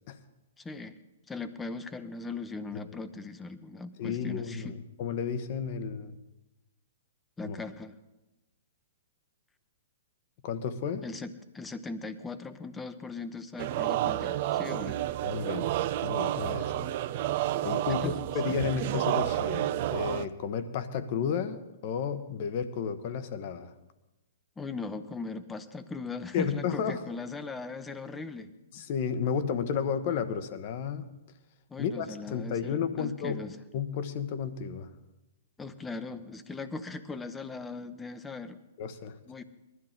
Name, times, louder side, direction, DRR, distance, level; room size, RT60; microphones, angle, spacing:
voice 1, 0.6-0.9 1.3-4.8 7.4-7.9 11.0-15.0 17.9-18.2 18.5-18.6 24.6-28.5 31.7-33.6 35.6-38.6 39.3-39.4, left 3 dB, 10° left, 11 dB, 0.9 m, -39 dB
voice 2, 4.0-6.2 7.4-7.6 10.4-11.0 15.2-15.7 16.0-16.9 17.6-23.7 26.3-27.0 28.7-31.1 31.8-33.4 33.7-34.9 38.8-39.2, left 7 dB, 45° left, 11 dB, 1.1 m, -32 dB
sound 1, 13.6-20.3, right 13 dB, 50° right, 0.5 m, -30 dB
20.5 x 12.5 x 3.8 m, 1.0 s
figure-of-eight pair, 120°, 0 cm